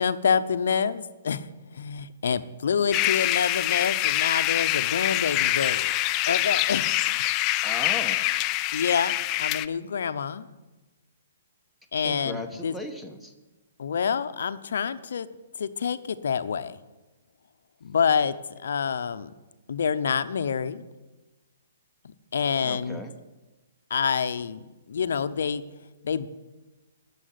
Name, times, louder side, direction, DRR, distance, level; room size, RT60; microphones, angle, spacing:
voice 1, 0.0-1.4 1.7-5.9 6.3-7.0 8.7-9.1 9.4-10.5 11.9-12.7 13.8-15.3 15.6-16.8 17.8-18.3 18.6-19.3 19.7-20.9 22.3-23.0 23.9-24.6 24.9-25.6 26.0-26.3, left 6 dB, 70° left, 12 dB, 0.7 m, -27 dB
sound 1, 2.9-9.7, left 16 dB, 30° left, 0.4 m, -25 dB
voice 2, 7.6-8.2 12.0-13.3 22.6-23.1, left 1 dB, ahead, 5 dB, 1.3 m, -37 dB
11.0 x 7.1 x 9.5 m, 1.1 s
hypercardioid pair, 140°, 0 cm